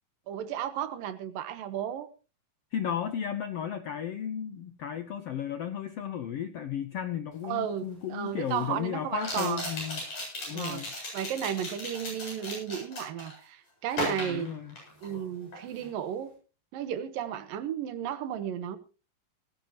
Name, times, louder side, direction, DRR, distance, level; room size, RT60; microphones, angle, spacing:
voice 1, 0.3-2.1 7.4-9.7 10.5-14.5 15.0-16.3 16.7-18.8, right 10 dB, 80° right, 2.9 m, -34 dB
voice 2, 2.7-10.0 10.5-10.9 14.0-14.7, left 9 dB, 75° left, 1.4 m, -34 dB
sound 1, 7.5-7.6 9.2-13.4 13.9-15.2 15.5-15.9, left 1 dB, 55° left, 9.2 m, -36 dB
19.0 x 14.5 x 3.0 m
omnidirectional pair, 3.9 m